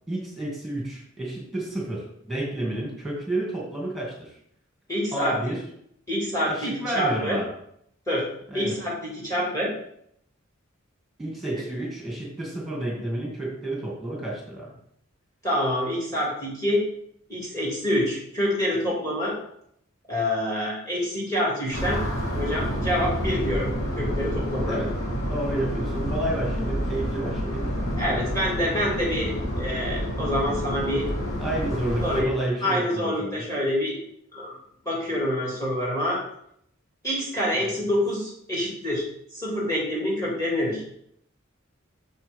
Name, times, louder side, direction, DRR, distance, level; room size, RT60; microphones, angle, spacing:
voice 1, 0.1-4.4 5.1-5.6 6.5-7.5 8.5-8.8 11.2-14.8 24.7-24.9 25.3-27.7 31.4-33.4 37.5-37.7, right 1 dB, ahead, -4 dB, 2.4 m, -30 dB
voice 2, 4.9-5.4 6.1-7.4 8.1-8.3 8.5-9.7 15.4-16.8 17.3-19.4 20.1-22.0 22.3-23.7 24.0-24.8 28.0-31.1 32.0-32.3 32.6-34.0 34.3-34.6 34.8-36.2 37.0-39.1 39.3-40.8, left 1 dB, 15° left, -4 dB, 2.3 m, -26 dB
sound 1, 21.7-32.2, equal, 85° left, 2.8 m, -29 dB
7.9 x 7.0 x 3.6 m, 0.70 s
head